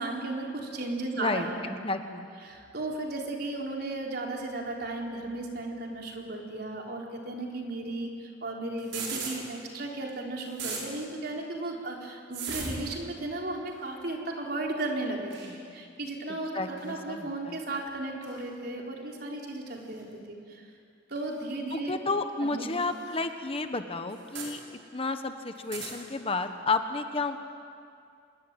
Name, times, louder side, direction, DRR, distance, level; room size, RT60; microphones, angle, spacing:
voice 1, 0.0-1.8 2.4-20.7 21.1-22.0 22.4-22.7, right 2 dB, 60° right, 0 dB, 4.1 m, -35 dB
voice 2, 1.2-2.3 16.5-17.6 21.7-24.6 24.9-27.4, left 3 dB, 30° left, 7 dB, 1.3 m, -31 dB
sound 1, 8.8-9.3 10.1-10.2 10.4-10.8 12.3-12.9 13.7-13.9 15.3-15.5 16.8-17.0 18.2-18.3 19.7-19.8 21.2-21.3 22.6-22.7 23.1-23.2 24.1-24.5 25.5-25.9, right 5 dB, 90° right, 5.9 m, -36 dB
26.0 x 21.5 x 9.2 m, 2.4 s
head